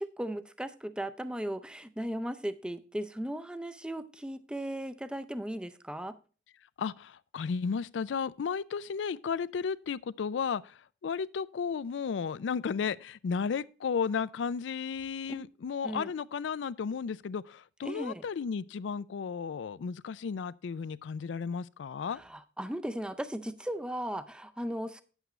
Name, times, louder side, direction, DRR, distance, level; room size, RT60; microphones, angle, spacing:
voice 1, 0.0-6.2 15.3-15.5 15.8-16.1 17.8-18.2 22.1-25.0, right 1 dB, 5° right, 0.5 m, -37 dB
voice 2, 6.8-22.2, left 6 dB, 90° left, 0.4 m, -34 dB
9.1 x 8.1 x 3.1 m
head